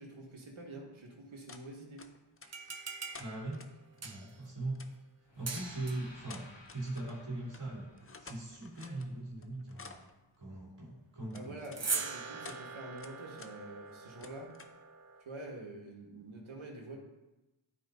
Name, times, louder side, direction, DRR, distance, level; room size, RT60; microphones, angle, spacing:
voice 1, 0.0-2.1 11.3-14.5 15.2-17.0, right 2 dB, 75° right, -1 dB, 1.7 m, -47 dB
sound 1, 1.5-1.7 2.0-2.7 3.1-4.1 4.8-4.9 5.5-5.7 6.2-7.2 7.5-7.6 7.9-9.1 9.4-10.1 11.3-11.8 12.3-12.6 13.0-13.5 13.8-14.8, left 4 dB, 30° left, 0.6 m, -52 dB
sound 2, 2.4-4.5 5.5-6.2 11.6-15.2, right 4 dB, 30° right, 0.7 m, -41 dB
voice 2, 3.2-3.7 4.0-4.8 5.3-6.5 6.7-7.9 8.2-10.0 10.4-11.6, right 2 dB, 60° right, -6 dB, 2.6 m, -40 dB
sound 3, 5.3-9.3, left 2 dB, 60° left, 1.4 m, -58 dB
12.0 x 4.6 x 2.7 m, 1.0 s
cardioid pair, 55°, 49 cm